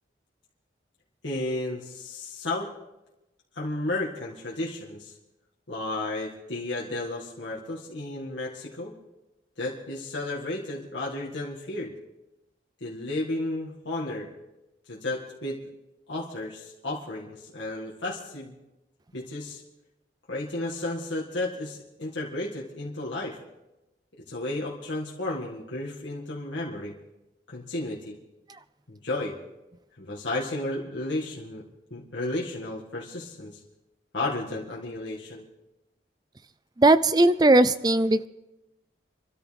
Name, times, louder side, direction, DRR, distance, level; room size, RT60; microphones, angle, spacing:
voice 1, 1.2-2.7 3.6-5.1 5.7-8.9 9.6-11.9 12.8-14.3 14.9-15.6 16.1-18.5 19.1-19.6 20.3-23.4 24.3-27.0 27.5-28.2 28.9-29.4 30.0-31.6 31.9-33.6 34.1-35.5, left 2 dB, 90° left, -4 dB, 2.0 m, -33 dB
voice 2, 36.8-38.3, right 2 dB, 20° right, 13 dB, 0.4 m, -19 dB
27.5 x 13.0 x 3.5 m, 0.99 s
head